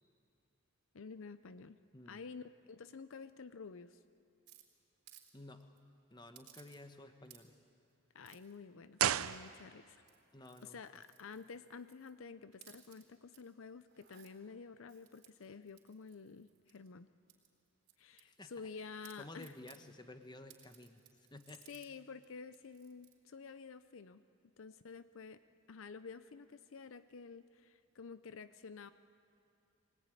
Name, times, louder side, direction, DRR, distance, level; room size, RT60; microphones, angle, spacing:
voice 1, 0.9-1.8 2.1-4.0 8.1-10.0 10.6-17.1 18.0-19.5 21.7-24.2 24.6-25.4 25.7-28.9, left 5 dB, 70° left, 13 dB, 0.6 m, -50 dB
sound 1, 4.5-5.3 5.6-5.8 6.3-7.0 7.2-7.7 8.2-8.6 9.2-9.6 10.0-12.1 12.5-13.4 13.8-14.3 14.9-16.9 17.3-18.7 19.0-19.8 20.5-21.9 22.2-22.3 22.5-23.1, right 12 dB, 50° right, 4.0 m, -62 dB
voice 2, 5.3-5.7 6.1-7.6 10.3-10.8 18.2-18.7 19.2-21.7, left 2 dB, 20° left, 8 dB, 1.1 m, -53 dB
sound 2, 8.9-10.1 10.3-10.4, right 10 dB, 80° right, 0.5 m, -34 dB
23.5 x 18.5 x 9.8 m, 2.5 s
head